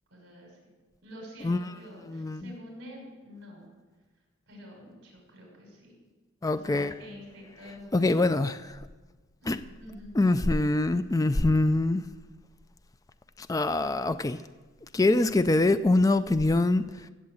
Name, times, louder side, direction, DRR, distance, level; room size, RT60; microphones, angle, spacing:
voice 1, 0.1-0.6 1.0-3.7 4.5-5.9 6.5-8.3 9.4-10.2, equal, 55° right, 6.0 m, -47 dB
voice 2, 2.1-2.5 6.4-6.9 7.9-8.9 9.5-9.6 10.2-12.1 13.4-14.4 14.9-17.1, left 2 dB, 15° left, 0.4 m, -24 dB
15.5 x 7.8 x 7.9 m
head